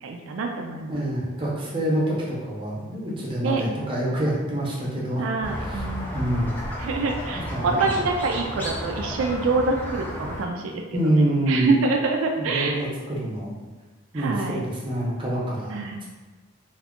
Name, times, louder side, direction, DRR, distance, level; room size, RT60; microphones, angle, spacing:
voice 1, 0.0-1.0 3.4-3.6 5.2-6.1 6.8-10.8 11.1-12.8 14.1-14.6 15.7-16.0, right 3 dB, 80° right, 2 dB, 0.3 m, -26 dB
voice 2, 0.9-5.2 5.7-5.8 6.1-6.6 7.5-7.9 10.9-11.7 12.4-13.5 14.1-15.8, right 1 dB, 25° right, -5 dB, 0.7 m, -26 dB
Squeak, 5.4-10.4, equal, 10° left, 0.4 m, -32 dB
2.6 x 2.4 x 3.6 m, 1.3 s
head